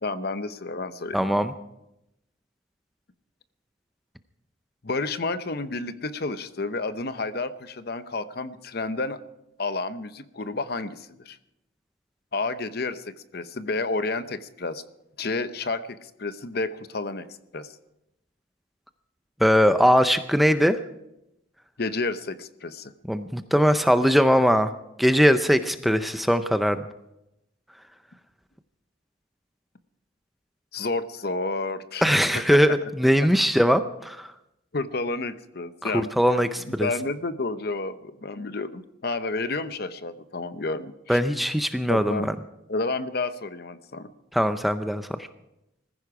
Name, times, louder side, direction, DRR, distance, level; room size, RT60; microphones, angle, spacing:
voice 1, 0.0-1.4 4.8-9.2 9.6-11.4 12.3-14.8 15.2-17.3 17.5-17.8 21.8-22.9 30.7-32.1 32.5-32.6 34.7-36.1 36.6-41.2 41.9-42.3 42.7-44.1, left 3 dB, 50° left, 12 dB, 0.8 m, -30 dB
voice 2, 1.1-1.5 19.4-20.8 23.1-24.7 25.0-26.8 32.0-34.3 35.8-36.9 41.1-42.3 44.3-45.3, equal, ahead, 9 dB, 0.5 m, -21 dB
20.0 x 15.0 x 4.8 m, 0.87 s
head